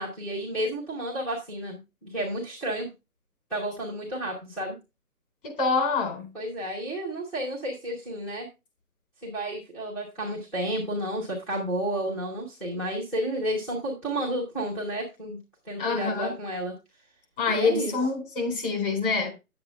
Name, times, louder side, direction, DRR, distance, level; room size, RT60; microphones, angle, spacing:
voice 1, 0.0-2.9 3.5-4.8 6.3-8.5 9.2-15.4 15.6-16.7 17.5-17.9, right 1 dB, ahead, 1.0 m, -31 dB
voice 2, 5.4-6.3 15.8-16.4 17.4-19.3, left 4 dB, 35° left, 4.2 m, -26 dB
10.0 x 7.9 x 3.4 m
hypercardioid pair, 160°, 45 cm